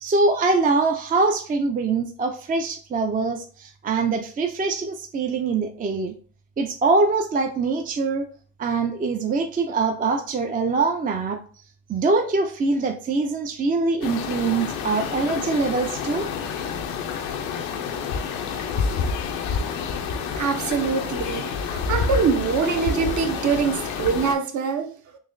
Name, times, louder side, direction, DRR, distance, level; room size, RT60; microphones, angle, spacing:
voice 1, 0.0-6.1 6.6-8.3 8.6-11.4 11.9-16.3, right 3 dB, 25° right, 0.4 m, -23 dB
sound 1, 14.0-24.3, left 5 dB, 90° left, 0.6 m, -28 dB
voice 2, 20.4-25.0, right 6 dB, 55° right, 0.8 m, -24 dB
3.9 x 3.0 x 2.5 m
supercardioid pair, 65°, 35 cm